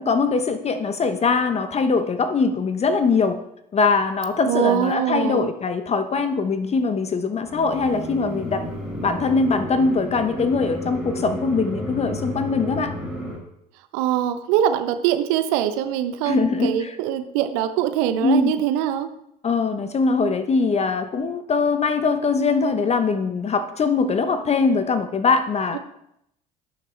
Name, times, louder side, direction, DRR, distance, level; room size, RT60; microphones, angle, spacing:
voice 1, 0.0-3.4 3.7-8.7 9.0-12.9 16.2-17.0 18.2-18.5 19.4-25.8, left 4 dB, 30° left, 9 dB, 1.0 m, -22 dB
voice 2, 4.5-5.5 13.9-19.1, right 10 dB, 65° right, 9 dB, 1.0 m, -23 dB
sound 1, 7.4-13.4, equal, ahead, 4.7 m, -31 dB
18.5 x 6.5 x 3.4 m, 0.78 s
figure-of-eight pair, 60°, 20 cm